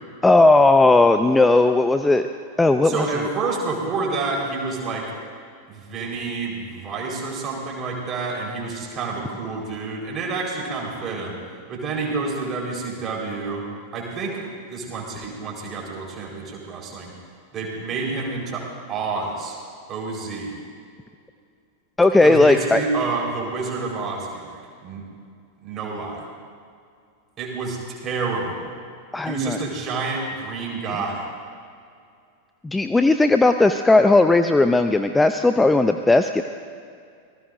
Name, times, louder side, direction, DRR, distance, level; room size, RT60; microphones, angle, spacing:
voice 1, 0.2-2.3 2.6-3.1 22.0-22.8 29.1-29.6 32.6-36.4, left 2 dB, 10° left, 8 dB, 0.5 m, -16 dB
voice 2, 2.8-5.1 5.7-11.4 11.7-13.6 13.9-17.1 17.5-19.6 19.9-20.6 22.2-25.0 25.6-26.3 27.4-28.7 29.2-31.2, right 3 dB, 30° right, -2 dB, 4.4 m, -29 dB
27.0 x 19.5 x 2.6 m, 2.3 s
figure-of-eight pair, 90°, 0 cm